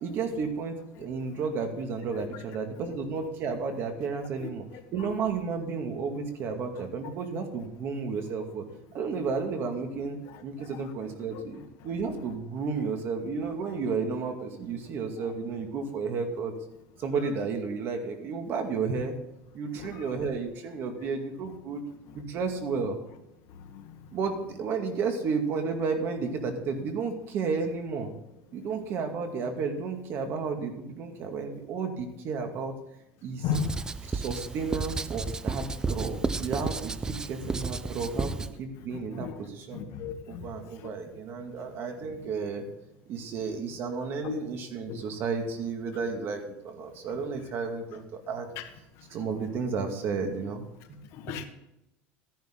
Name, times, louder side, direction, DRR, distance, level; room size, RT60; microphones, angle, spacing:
voice 1, 0.0-4.6 4.9-8.6 8.9-10.2 10.4-16.5 17.0-19.1 19.5-21.8 22.1-23.0 24.1-28.1 28.5-32.7 33.2-33.4 34.1-39.8 40.3-42.6 43.1-48.5 49.1-50.7 51.3-51.4, right 5 dB, 45° right, 5 dB, 2.1 m, -32 dB
Writing, 33.5-38.5, right 3 dB, 10° right, 0.4 m, -32 dB
voice 2, 38.9-39.3 39.7-40.5 44.2-44.3 44.9-45.0 48.6-48.7 51.1-51.5, left 7 dB, 55° left, 5 dB, 1.7 m, -34 dB
13.5 x 10.5 x 3.9 m, 0.88 s
cardioid pair, 145°, 6 cm